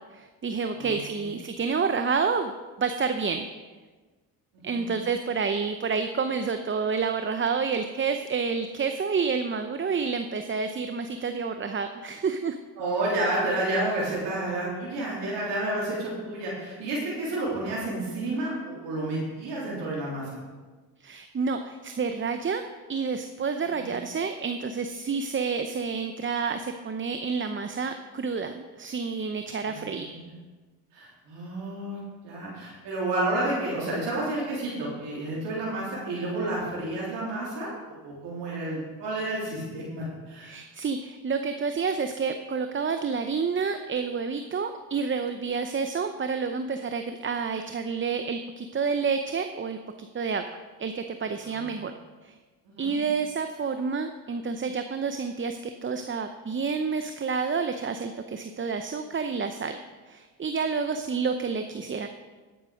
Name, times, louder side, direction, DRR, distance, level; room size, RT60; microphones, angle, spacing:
voice 1, 0.1-2.5 2.8-3.5 4.6-12.6 21.0-22.6 22.9-30.1 40.4-50.4 50.8-51.9 52.2-52.3 52.8-59.8 60.1-62.1, right 5 dB, 30° right, 7 dB, 0.7 m, -29 dB
voice 2, 0.8-1.3 4.5-4.9 12.8-20.3 23.8-23.9 29.7-30.3 30.9-37.7 38.0-40.6 51.4-51.6 52.7-52.9, right 2 dB, 85° right, -6 dB, 3.5 m, -30 dB
11.0 x 8.8 x 5.2 m, 1.3 s
supercardioid pair, 65°, 42 cm